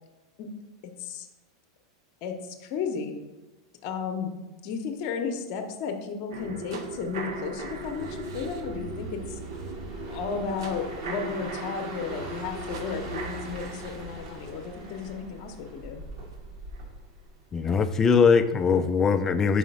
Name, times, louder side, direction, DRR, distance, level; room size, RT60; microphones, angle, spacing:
voice 1, 0.8-1.3 2.2-3.2 3.8-4.3 4.6-9.4 10.1-16.0, left 6 dB, 50° left, 5 dB, 0.8 m, -34 dB
sound 1, 6.3-16.3 16.7-16.8, right 3 dB, 85° right, 0.8 m, -38 dB
sound 2, 6.9-18.0 18.4-18.6, right 1 dB, 65° right, 1.6 m, -44 dB
voice 2, 17.5-19.6, left 5 dB, 20° left, 11 dB, 0.4 m, -21 dB
4.9 x 3.7 x 5.3 m, 1.1 s
supercardioid pair, 125°, 2 cm